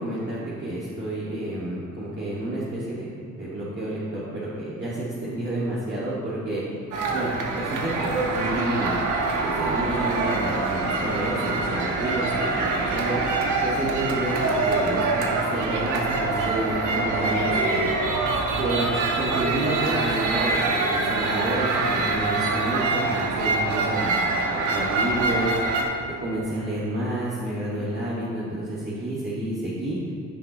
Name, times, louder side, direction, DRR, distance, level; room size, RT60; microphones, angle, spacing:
voice 1, 0.0-3.1 3.3-6.6 7.1-9.0 9.3-13.2 13.6-17.9 18.6-18.9 19.2-25.6 26.1-30.0, right 1 dB, 35° right, -9 dB, 2.2 m, -29 dB
sound 1, 6.9-25.8, right 3 dB, 80° right, 1.3 m, -25 dB
15.0 x 5.9 x 3.2 m, 2.6 s
cardioid pair, 90°, 30 cm